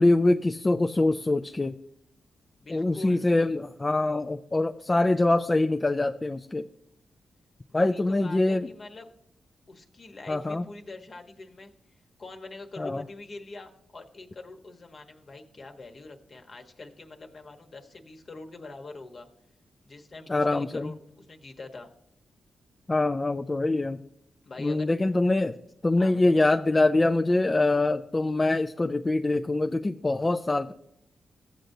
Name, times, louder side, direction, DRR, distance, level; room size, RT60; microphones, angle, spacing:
voice 1, 0.0-1.8 2.7-6.7 7.7-8.7 10.3-10.6 12.8-13.0 20.3-20.9 22.9-24.0 24.6-25.6 25.8-30.7, left 2 dB, 25° left, 7 dB, 0.3 m, -24 dB
voice 2, 2.6-3.3 7.7-9.1 9.7-19.3 19.8-21.9 24.4-24.9 26.0-26.4, left 3 dB, 50° left, 4 dB, 1.1 m, -44 dB
15.0 x 7.7 x 2.7 m, 0.78 s
cardioid pair, 80°, 0 cm